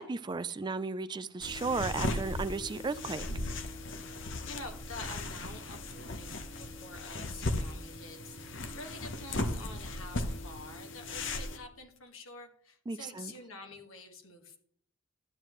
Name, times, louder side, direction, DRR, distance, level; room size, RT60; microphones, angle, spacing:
voice 1, 0.0-3.3 12.9-13.3, right 4 dB, 20° right, 0.3 m, -35 dB
sound 1, 1.4-11.6, left 2 dB, 60° left, 1.0 m, -37 dB
voice 2, 4.5-14.6, left 2 dB, 80° left, 1.7 m, -48 dB
12.0 x 9.1 x 3.1 m
head